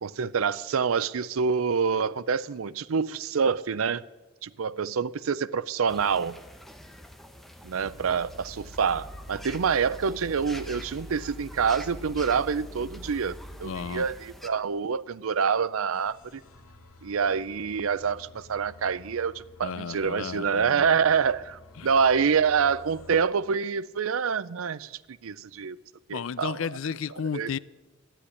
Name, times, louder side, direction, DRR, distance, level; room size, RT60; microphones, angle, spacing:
voice 1, 0.0-4.0 4.4-6.4 7.6-16.4 17.0-25.8 26.1-26.6 27.3-27.5, right 6 dB, 90° right, 0.5 m, -26 dB
sound 1, 5.9-14.5, equal, ahead, 0.9 m, -47 dB
sound 2, 7.8-15.5 15.9-23.2, equal, 90° left, 2.3 m, -47 dB
voice 2, 13.6-14.1 19.6-21.0 21.8-21.9 26.1-27.6, left 6 dB, 70° left, 0.4 m, -33 dB
13.0 x 10.0 x 9.8 m
head